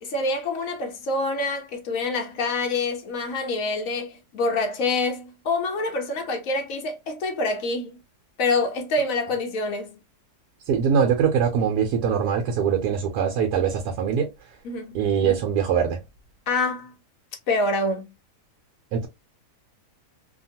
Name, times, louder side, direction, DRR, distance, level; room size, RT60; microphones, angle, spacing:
voice 1, 0.0-7.9 8.4-10.0 14.6-15.0 16.5-16.9 17.5-18.1, left 2 dB, 65° left, 1.0 m, -26 dB
voice 2, 10.7-14.3 14.9-16.0 18.9-19.1, right 7 dB, 80° right, 1.1 m, -22 dB
2.8 x 2.3 x 2.7 m
omnidirectional pair, 1.7 m